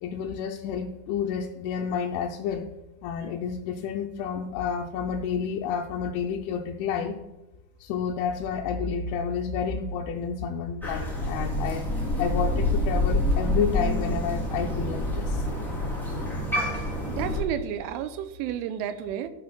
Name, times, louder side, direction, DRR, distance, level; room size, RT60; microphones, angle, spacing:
voice 1, 0.0-2.7 3.0-7.2 7.8-11.9 12.2-15.4, left 6 dB, 90° left, 1 dB, 3.1 m, -30 dB
Crow, 10.8-17.4, left 1 dB, ahead, 1.9 m, -27 dB
voice 2, 17.1-19.3, right 10 dB, 90° right, 12 dB, 3.2 m, -31 dB
12.0 x 6.2 x 5.9 m, 1.0 s
omnidirectional pair, 5.4 m